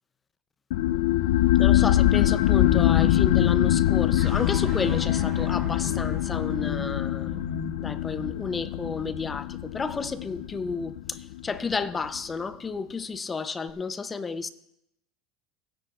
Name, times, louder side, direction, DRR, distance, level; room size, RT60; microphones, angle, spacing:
sound 1, 0.7-11.8, left 14 dB, 80° left, 0.4 m, -23 dB
voice 1, 1.6-7.4 7.8-14.5, left 4 dB, 20° left, 0.6 m, -32 dB
sound 2, 4.2-10.5, right 4 dB, 30° right, 1.3 m, -43 dB
24.0 x 9.9 x 2.4 m
supercardioid pair, 130°, 0 cm